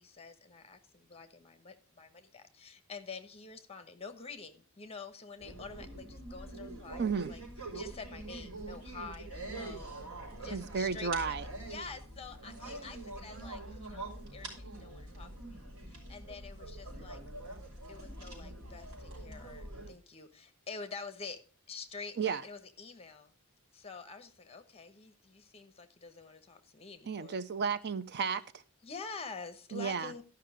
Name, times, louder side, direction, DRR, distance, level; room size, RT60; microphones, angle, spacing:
voice 1, 0.0-7.4 7.7-17.2 17.9-23.3 23.7-27.4 28.8-30.2, left 4 dB, 30° left, 1.0 m, -47 dB
sound 1, 5.4-19.9, right 2 dB, 70° right, 4.2 m, -45 dB
voice 2, 7.0-7.3 10.5-11.4 22.2-22.4 27.1-28.4 29.7-30.1, right 6 dB, 50° right, 0.5 m, -33 dB
12.5 x 5.7 x 4.9 m
head